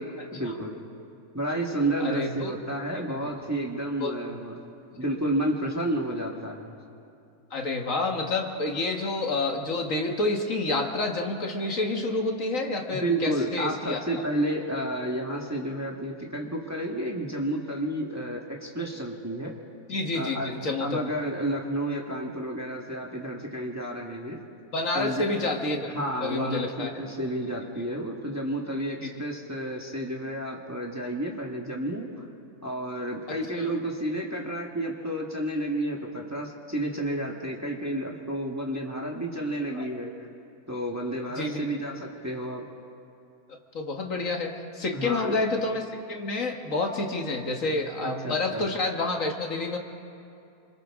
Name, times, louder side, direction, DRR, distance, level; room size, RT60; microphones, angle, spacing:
voice 1, 0.3-0.8 1.3-4.5 4.9-6.7 12.9-19.5 20.1-20.5 20.8-24.4 24.9-25.3 25.8-32.1 32.6-40.3 40.7-42.6 44.9-45.3 48.0-48.7, right 1 dB, 10° right, -1 dB, 1.6 m, -31 dB
voice 2, 2.0-2.6 3.1-3.2 4.0-4.4 7.5-14.2 19.9-21.0 24.7-25.9 26.2-26.9 29.0-29.1 33.3-33.7 39.7-39.8 41.4-41.7 43.7-49.8, left 2 dB, 60° left, 2 dB, 1.8 m, -29 dB
28.5 x 26.0 x 3.7 m, 2.6 s
omnidirectional pair, 1.6 m